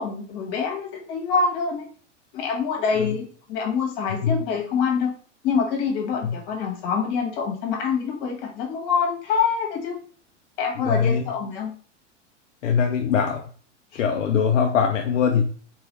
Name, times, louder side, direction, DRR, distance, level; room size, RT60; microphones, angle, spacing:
voice 1, 0.0-1.9 2.3-5.1 5.4-10.0 10.6-11.7 13.9-14.0, left 5 dB, 50° left, 1 dB, 1.6 m, -25 dB
voice 2, 10.8-11.3 12.6-13.5 13.9-15.5, left 7 dB, 80° left, 3 dB, 0.6 m, -22 dB
3.6 x 3.1 x 3.1 m, 0.43 s
hypercardioid pair, 100°, 37 cm